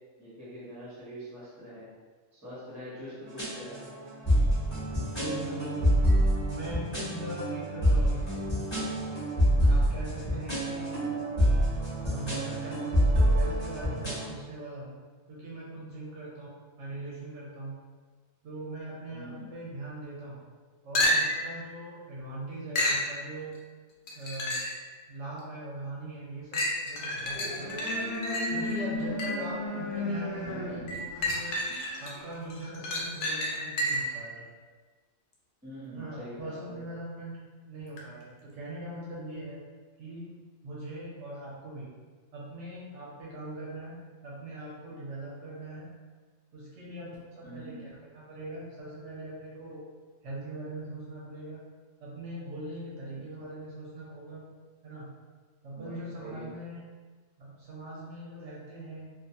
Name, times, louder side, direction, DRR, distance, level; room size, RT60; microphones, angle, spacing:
voice 1, 0.2-1.9 2.3-3.9 19.1-19.5 35.6-36.8 47.4-47.9 55.8-56.5, equal, 15° right, -9 dB, 0.8 m, -44 dB
sound 1, 3.3-14.3, equal, 25° left, 0.8 m, -27 dB
voice 2, 5.1-6.1 6.5-8.2 9.7-11.0 12.0-12.9 13.4-14.9 15.3-17.8 18.4-20.4 20.8-23.5 24.1-24.6 25.1-28.0 28.5-31.6 32.0-34.4 35.9-37.3 37.6-39.6 40.0-40.4 40.6-41.9 42.3-44.0 44.2-45.9 46.5-47.8 48.1-49.8 50.2-51.6 52.0-54.4 54.8-55.1 55.6-56.8 57.4-59.1, right 1 dB, 70° right, -6 dB, 0.9 m, -41 dB
sound 2, 20.9-21.5 22.7-23.1 24.1-24.8 25.4-25.5 26.5-29.5 30.9-32.1 32.5-34.2 38.0-38.1, left 1 dB, 65° left, 0.5 m, -30 dB
sound 3, 27.2-32.4, left 2 dB, 85° left, 1.1 m, -36 dB
2.4 x 2.3 x 2.7 m, 1.4 s
omnidirectional pair, 1.3 m